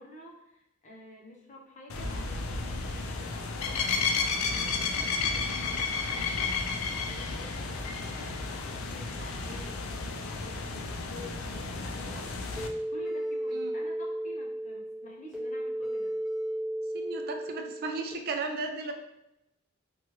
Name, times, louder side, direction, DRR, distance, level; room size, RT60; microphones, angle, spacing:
voice 1, 0.0-6.6 6.9-12.4 12.9-16.2, left 1 dB, 35° left, -1 dB, 0.6 m, -49 dB
sound 1, 1.9-12.7, left 4 dB, 85° left, 0.4 m, -32 dB
sound 2, 12.6-18.1, right 1 dB, 5° right, 0.7 m, -34 dB
voice 2, 16.9-18.9, right 3 dB, 50° right, 5 dB, 0.3 m, -35 dB
3.0 x 2.2 x 3.0 m, 0.88 s
head